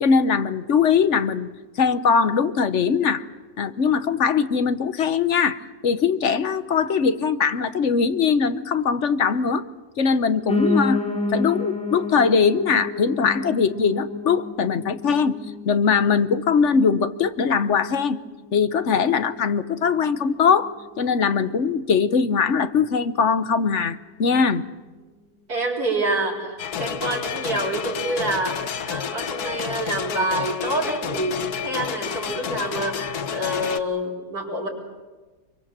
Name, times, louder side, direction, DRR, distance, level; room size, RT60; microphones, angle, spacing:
voice 1, 0.0-1.5 1.8-3.2 3.6-9.6 10.0-11.0 11.3-15.4 15.7-18.2 18.5-24.6, left 6 dB, 55° left, 13 dB, 1.3 m, -21 dB
Piano, 10.5-19.6 20.0-21.2 21.4-21.5 21.8-21.9 22.1-22.2 22.7-22.8, left 2 dB, 5° left, 3.0 m, -30 dB
voice 2, 25.5-34.7, right 1 dB, 90° right, -2 dB, 5.1 m, -27 dB
sound 1, 26.6-33.8, left 8 dB, 90° left, 1.6 m, -30 dB
25.0 x 24.0 x 7.5 m, 1.3 s
omnidirectional pair, 1.6 m